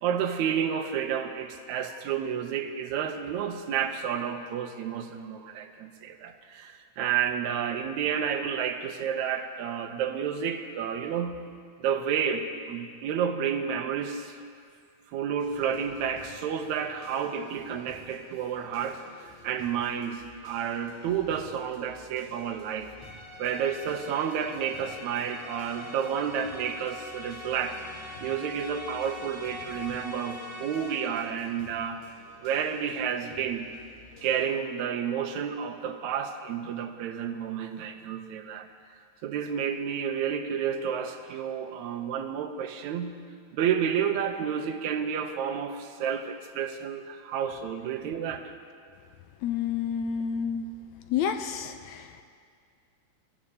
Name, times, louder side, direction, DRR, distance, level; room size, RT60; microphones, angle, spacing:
voice 1, 0.0-11.4 11.8-14.4 15.1-22.9 23.4-27.8 28.2-32.0 32.4-33.7 34.2-38.7 39.2-43.2 43.5-48.5, right 8 dB, 75° right, 6 dB, 2.1 m, -30 dB
sound 1, 15.4-34.5, left 2 dB, 65° left, 3.1 m, -53 dB
sound 2, 23.0-31.4, left 2 dB, 35° left, 0.5 m, -43 dB
voice 2, 49.4-50.7 51.1-52.2, left 7 dB, 80° left, 7 dB, 1.8 m, -29 dB
24.5 x 14.5 x 2.8 m, 2.2 s
omnidirectional pair, 3.5 m